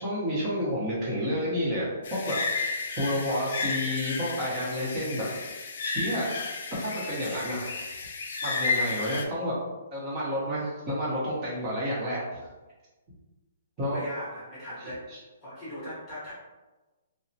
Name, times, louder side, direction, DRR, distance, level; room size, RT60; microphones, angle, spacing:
voice 1, 0.0-2.6 3.0-5.3 5.8-6.3 6.8-7.7 8.4-9.5 9.9-12.2 13.8-14.0 15.1-15.2, equal, 20° right, -7 dB, 0.8 m, -30 dB
sound 1, 2.0-9.3, left 4 dB, 55° left, 0.3 m, -32 dB
voice 2, 13.8-15.0 15.4-16.3, equal, 10° left, -11 dB, 0.9 m, -39 dB
2.9 x 2.0 x 2.7 m, 1.2 s
hypercardioid pair, 165°, 0 cm